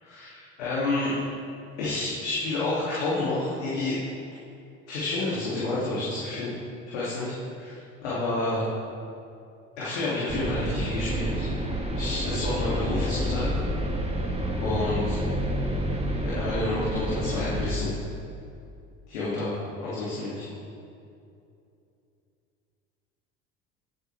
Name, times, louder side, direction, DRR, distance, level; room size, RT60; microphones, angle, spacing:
voice 1, 0.0-1.1 1.8-3.9 4.9-6.5 6.9-8.6 9.8-11.5 11.9-13.5 14.6-15.2 16.2-17.9 19.1-19.5 19.8-20.5, left 2 dB, 85° left, -8 dB, 2.5 m, -29 dB
sound 1, 10.3-17.7, equal, 20° right, 2.1 m, -29 dB
18.0 x 7.9 x 3.4 m, 2.6 s
hypercardioid pair, 75°, 33 cm